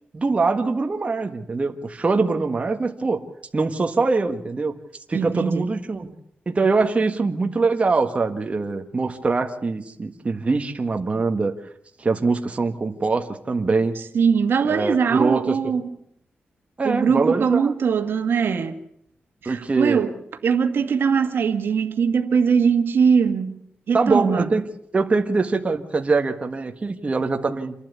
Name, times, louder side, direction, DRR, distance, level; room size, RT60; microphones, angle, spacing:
voice 1, 0.1-3.2 3.5-4.7 5.1-6.1 6.4-11.5 12.0-13.9 14.6-15.5 16.8-17.7 19.4-20.1 23.9-24.6 24.9-27.8, right 3 dB, 35° right, 1.6 m, -23 dB
voice 2, 5.1-5.7 14.1-15.9 16.8-18.7 19.4-20.1 20.4-23.6 23.9-24.5, right 6 dB, 75° right, 1.8 m, -21 dB
27.5 x 12.0 x 8.3 m
wide cardioid pair, 105°, 4 cm